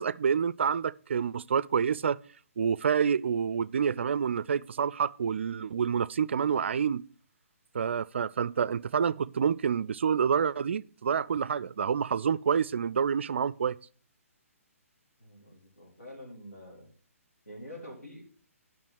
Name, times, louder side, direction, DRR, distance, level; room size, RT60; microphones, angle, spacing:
voice 1, 0.0-2.2 2.6-7.0 7.7-13.8, right 7 dB, 50° right, 0.4 m, -28 dB
voice 2, 15.2-16.9 17.5-18.2, equal, 85° left, 4.1 m, -46 dB
10.0 x 5.9 x 6.1 m
figure-of-eight pair, 135°, 8 cm